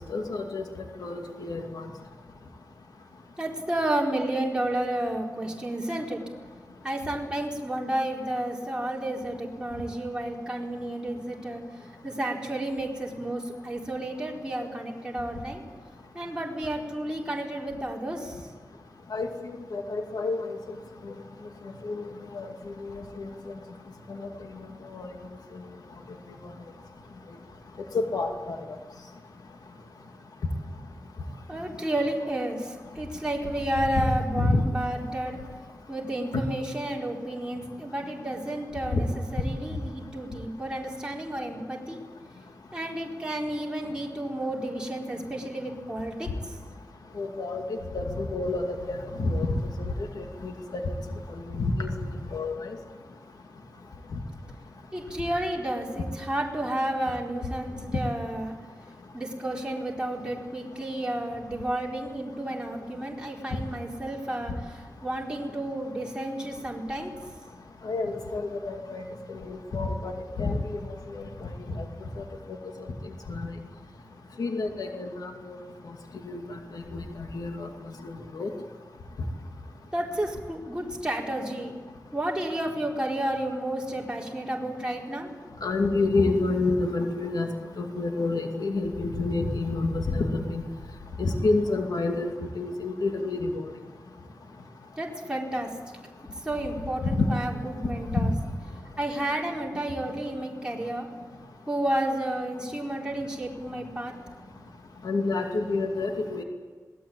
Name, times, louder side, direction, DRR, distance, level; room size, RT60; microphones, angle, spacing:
voice 1, 0.1-0.6 1.0-1.9 19.1-20.6 21.0-21.1 21.8-22.0 22.3-22.5 22.8-23.3 24.8-25.1 27.9-28.6 34.0-34.1 34.4-34.6 38.9-39.0 47.2-49.5 49.8-50.8 51.5-51.9 52.3-52.7 54.1-54.2 67.8-69.0 69.3-70.1 70.4-71.8 72.2-72.3 73.3-73.5 74.4-75.6 76.3-76.4 76.7-77.0 77.3-77.7 78.0-78.5 85.6-87.5 87.8-90.6 91.2-93.6 97.0-97.3 98.1-98.3 105.0-106.4, left 3 dB, 90° left, 3 dB, 2.5 m, -28 dB
voice 2, 3.4-6.2 6.8-11.6 12.0-15.6 16.1-18.4 31.5-35.4 35.9-42.0 42.7-46.5 54.9-58.5 59.1-67.1 79.9-81.7 82.1-85.3 95.0-96.0 96.4-98.3 99.0-101.1 101.7-104.1, right 1 dB, 15° right, -2 dB, 4.5 m, -31 dB
26.5 x 19.0 x 8.8 m, 1.4 s
wide cardioid pair, 105°, 6 cm